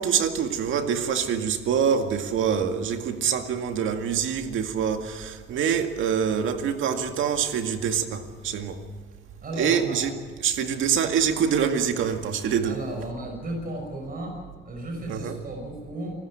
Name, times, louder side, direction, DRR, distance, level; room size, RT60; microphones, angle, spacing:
voice 1, 0.0-8.8 9.6-10.1 10.4-12.8 15.1-15.4, right 7 dB, 80° right, 2.1 m, -25 dB
voice 2, 9.4-10.0 12.6-14.4 14.6-16.2, right 1 dB, 45° right, 6.4 m, -34 dB
27.5 x 14.5 x 8.9 m
cardioid pair, 90°, 20 cm